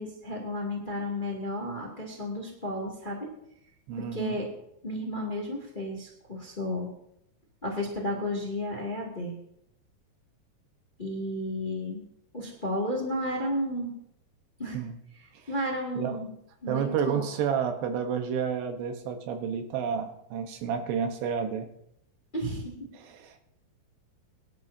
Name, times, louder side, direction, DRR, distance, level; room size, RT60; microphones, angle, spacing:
voice 1, 0.0-3.3 4.0-4.5 4.8-6.9 7.6-9.3 11.0-12.0 12.3-13.9 14.6-14.8 15.5-16.3 16.6-17.2 22.3-22.9, left 1 dB, 20° left, -1 dB, 1.5 m, -32 dB
voice 2, 3.9-4.4 14.7-15.0 16.0-16.2 16.7-21.7 22.9-23.4, right 7 dB, 90° right, 6 dB, 3.3 m, -30 dB
23.0 x 11.5 x 2.8 m, 0.76 s
omnidirectional pair, 4.7 m